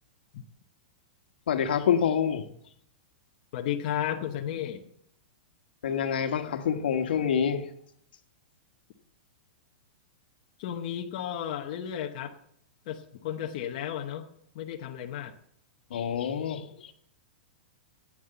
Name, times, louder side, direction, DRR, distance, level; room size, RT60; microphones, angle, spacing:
voice 1, 1.5-2.4 5.8-7.7 15.9-16.9, left 8 dB, 75° left, 7 dB, 1.4 m, -27 dB
voice 2, 3.5-4.8 10.6-12.4 12.9-14.3 14.5-15.3, left 10 dB, 40° left, 2 dB, 0.9 m, -33 dB
11.0 x 8.8 x 7.7 m, 0.71 s
supercardioid pair, 175°, 5 cm